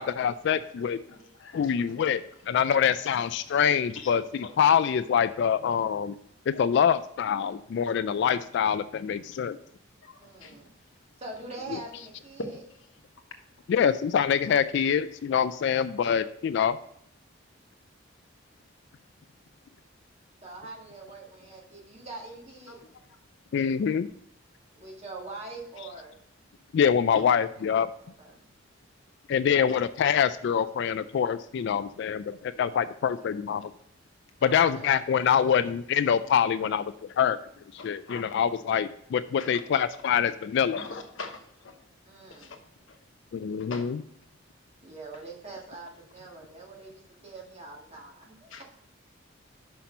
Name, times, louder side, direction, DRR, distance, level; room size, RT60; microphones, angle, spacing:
voice 1, 0.0-1.0 1.5-2.2 2.5-6.1 6.5-9.6 13.7-16.8 23.5-24.1 26.7-27.9 29.3-33.7 34.4-36.9 37.2-37.4 37.7-40.8 43.3-44.0, left 7 dB, 60° left, 13 dB, 0.3 m, -25 dB
voice 2, 0.8-1.8 3.1-3.2 3.9-4.1 6.5-6.8 10.0-10.6 12.4-12.6 22.7-22.8 36.6-36.7 37.8-38.2 39.4-39.5 40.7-41.7 42.3-42.6 43.6-43.9 48.5-48.6, left 3 dB, 80° left, 5 dB, 1.1 m, -42 dB
voice 3, 10.2-10.7 11.2-12.4 20.4-22.8 24.8-26.2 28.2-28.5 34.4-35.0 42.1-42.6 44.8-48.6, right 3 dB, 35° right, -1 dB, 1.8 m, -43 dB
5.9 x 5.7 x 5.1 m, 0.71 s
head